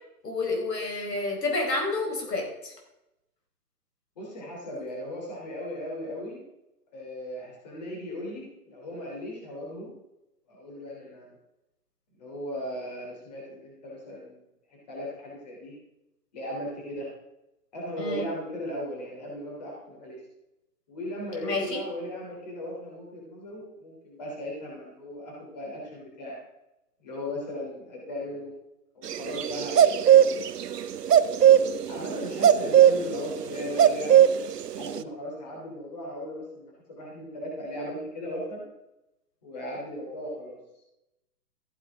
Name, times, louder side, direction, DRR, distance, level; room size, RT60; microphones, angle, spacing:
voice 1, 0.2-2.7 18.0-18.3 21.4-21.8, left 2 dB, 85° left, 0 dB, 4.8 m, -29 dB
voice 2, 4.1-6.4 6.9-9.9 10.5-11.3 12.2-14.4 14.7-15.7 16.3-17.1 17.7-20.2 20.9-26.4 27.0-28.5 28.9-30.5 31.9-34.2 34.8-36.7 37.0-38.6 39.4-40.6, equal, 25° left, -3 dB, 3.3 m, -37 dB
sound 1, 29.1-30.8 31.1-35.0, right 10 dB, 75° right, 0.8 m, -17 dB
14.5 x 9.2 x 3.7 m, 0.90 s
hypercardioid pair, 175°, 48 cm